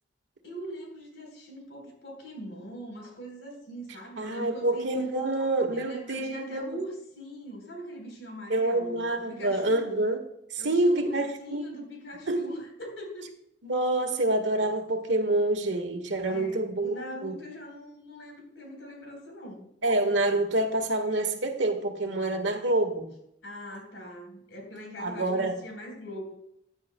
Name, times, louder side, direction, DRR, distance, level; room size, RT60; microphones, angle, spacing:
voice 1, 0.4-10.0 10.6-13.3 16.3-19.6 23.4-26.3, equal, 70° left, 2 dB, 3.9 m, -42 dB
voice 2, 4.2-6.6 8.5-10.2 10.5-11.7 12.3-12.5 13.6-17.0 17.2-17.4 19.8-23.1 25.0-25.6, right 2 dB, 75° right, 5 dB, 1.5 m, -27 dB
16.0 x 9.9 x 2.2 m, 0.75 s
head